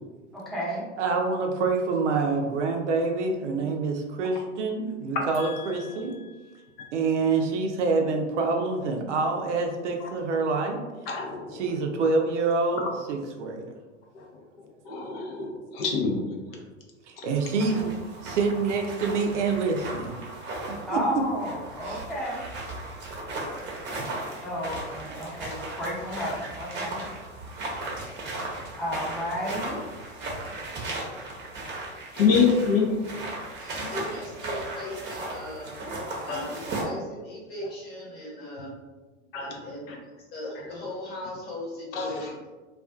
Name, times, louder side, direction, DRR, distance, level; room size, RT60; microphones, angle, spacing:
voice 1, 0.3-0.8 20.8-22.4 24.4-27.0 28.8-29.8, equal, ahead, -7 dB, 0.7 m, -32 dB
voice 2, 1.0-6.1 6.9-10.8 11.5-13.6 17.1-17.9 18.2-20.1 20.9-21.2 21.8-22.0 23.4-23.5, right 4 dB, 75° right, 3 dB, 0.5 m, -26 dB
voice 3, 11.1-11.6 14.2-14.3 14.9-16.2 32.2-33.0 36.3-36.5 39.3-39.6 41.9-42.1, left 5 dB, 55° left, 0 dB, 0.6 m, -25 dB
sound 1, 17.3-36.8, right 2 dB, 30° right, 0.7 m, -36 dB
voice 4, 33.6-35.7 36.2-38.7 39.4-40.0 40.3-42.5, left 1 dB, 25° left, -3 dB, 0.9 m, -38 dB
2.4 x 2.3 x 2.3 m, 1.2 s
hypercardioid pair, 95°, 36 cm